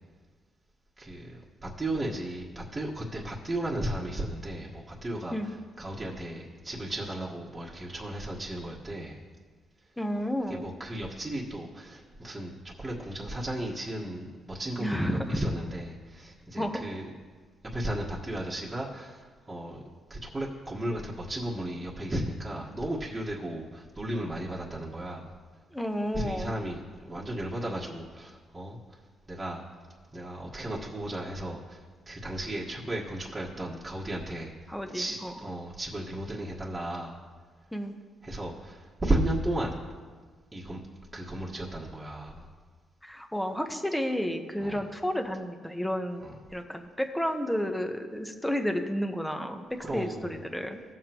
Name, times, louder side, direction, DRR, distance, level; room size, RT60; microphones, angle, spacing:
voice 1, 1.0-9.2 10.5-17.1 17.7-19.8 20.1-25.3 26.1-26.8 27.0-29.0 29.3-29.6 30.1-34.5 34.9-37.2 38.2-39.8 40.5-40.8 41.1-42.5 44.6-44.8 46.2-46.4 49.8-50.2, right 1 dB, 20° right, -5 dB, 1.5 m, -34 dB
voice 2, 10.0-10.7 14.8-15.4 16.6-16.8 25.7-26.5 34.7-35.3 37.7-37.9 43.0-49.6 49.9-50.8, equal, 5° left, 5 dB, 1.0 m, -31 dB
17.5 x 7.4 x 3.0 m, 1.5 s
cardioid pair, 90°, 0 cm